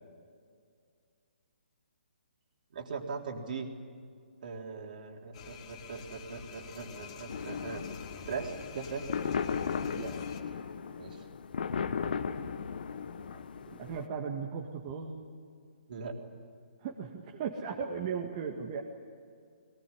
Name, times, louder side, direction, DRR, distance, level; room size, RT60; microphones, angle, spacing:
voice 1, 2.7-3.7 4.4-7.8 8.3-9.1 11.0-11.2 15.9-16.2, right 5 dB, 55° right, 2 dB, 3.6 m, -40 dB
sound 1, 5.3-10.4, left 6 dB, 35° left, 2.5 m, -47 dB
sound 2, 7.3-14.1, left 6 dB, 60° left, 1.2 m, -36 dB
voice 2, 13.7-15.3 16.8-18.8, right 6 dB, 35° right, 0 dB, 2.0 m, -37 dB
22.5 x 19.5 x 10.0 m, 2.2 s
hypercardioid pair, 145°, 6 cm